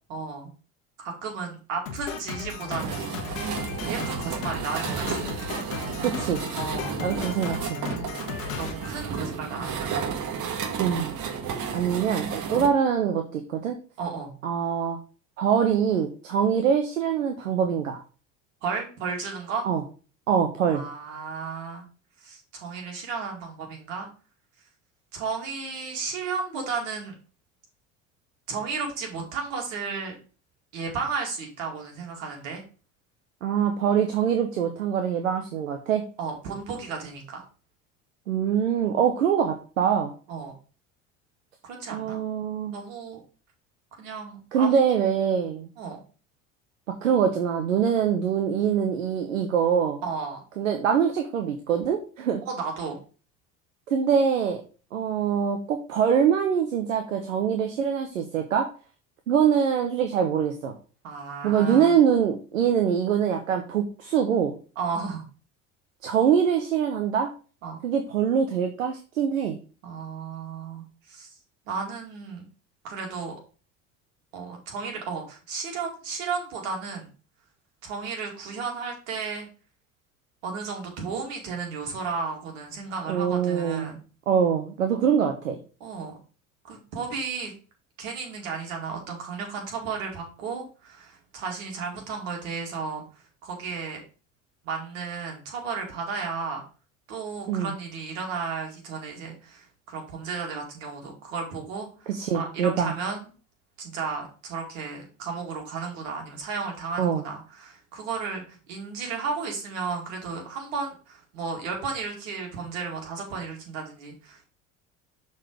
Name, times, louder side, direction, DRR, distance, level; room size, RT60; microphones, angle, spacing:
voice 1, 0.1-0.5 1.0-3.4 3.9-5.3 6.5-7.0 7.9-8.3 8.6-10.0 12.5-12.7 14.0-14.4 18.6-19.7 20.7-21.8 22.2-24.1 25.1-27.1 28.5-30.1 30.7-32.6 36.2-37.4 40.3-40.5 41.6-42.2 42.7-43.2 44.0-44.8 45.8-46.0 50.0-50.4 52.5-53.0 61.0-62.0 64.8-65.2 67.6-67.8 69.8-71.3 71.7-72.5 72.8-73.3 74.3-77.1 77.8-79.5 80.4-84.0 85.8-86.1 86.6-87.5 88.0-93.0 93.4-94.0 94.6-96.6 97.1-103.3 103.8-114.5, right 5 dB, 75° right, 1 dB, 2.5 m, -34 dB
Drum kit, 1.9-9.6, left 6 dB, 80° left, 1.1 m, -36 dB
sound 1, 2.7-12.7, right 6 dB, 50° right, 1.6 m, -32 dB
voice 2, 6.0-6.4 7.0-7.8 10.8-11.1 11.7-13.8 14.4-15.0 15.4-18.0 19.6-19.8 20.3-20.8 33.4-36.1 38.3-40.1 41.9-42.7 44.5-45.7 46.9-50.0 50.6-52.4 53.9-54.6 54.9-58.7 59.3-60.7 61.4-64.5 66.0-67.3 67.8-69.6 83.1-83.9 84.3-85.6 97.5-97.7 102.1-102.9 107.0-107.2, right 7 dB, 90° right, 5 dB, 0.8 m, -24 dB
6.3 x 4.2 x 4.8 m, 0.36 s
hypercardioid pair, 70°, 38 cm